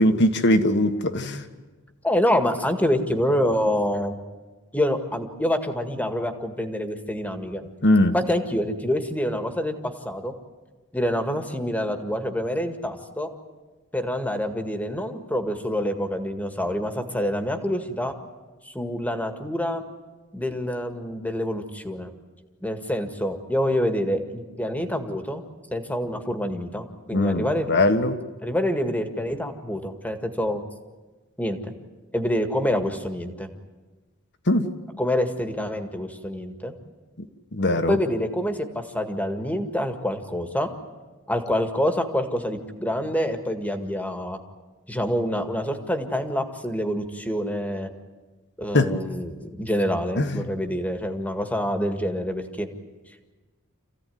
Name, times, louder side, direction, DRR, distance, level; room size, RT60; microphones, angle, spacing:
voice 1, 0.0-1.4 7.8-8.1 27.1-28.2 34.5-34.7 37.5-38.0 48.7-49.0 50.2-50.5, left 1 dB, 55° left, 1.6 m, -20 dB
voice 2, 2.0-4.2 4.7-7.6 8.1-10.3 10.9-13.3 13.9-18.1 18.7-19.8 20.3-22.1 22.6-25.4 25.7-27.7 28.4-30.6 31.4-31.7 32.1-33.5 35.0-36.7 37.9-40.7 41.3-44.4 44.9-47.9 48.6-52.7, equal, 5° left, 1.8 m, -26 dB
27.5 x 16.0 x 9.4 m
head